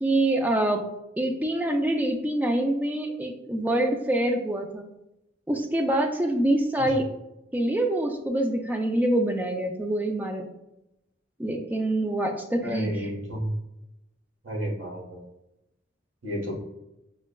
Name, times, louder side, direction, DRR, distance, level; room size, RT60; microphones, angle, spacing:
voice 1, 0.0-0.9 1.2-4.9 5.5-7.1 7.5-10.5 11.4-13.1, right 1 dB, 10° right, 4 dB, 0.3 m, -25 dB
voice 2, 12.6-13.5 14.4-15.2 16.2-16.5, equal, 90° right, -1 dB, 1.2 m, -31 dB
5.9 x 2.2 x 2.2 m, 0.88 s
head